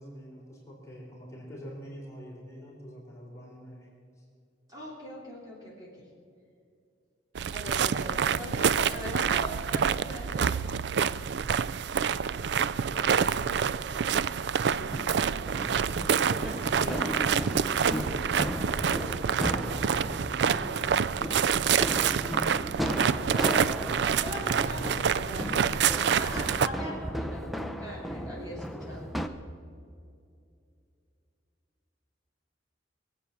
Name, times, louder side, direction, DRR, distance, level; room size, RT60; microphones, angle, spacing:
voice 1, 0.0-3.9 4.2-4.3 9.2-9.4 12.7-14.4 16.1-21.0 25.3-25.4, equal, 15° left, -4 dB, 3.5 m, -46 dB
voice 2, 4.7-6.1 7.5-10.7 14.7-15.0 16.4-17.0 23.0-23.9 24.2-29.1, equal, 20° right, -4 dB, 3.4 m, -41 dB
sound 1, 7.3-26.7, right 7 dB, 60° right, 0.4 m, -27 dB
sound 2, 14.6-29.3, equal, ahead, 0.6 m, -36 dB
22.0 x 8.0 x 7.2 m, 2.5 s
head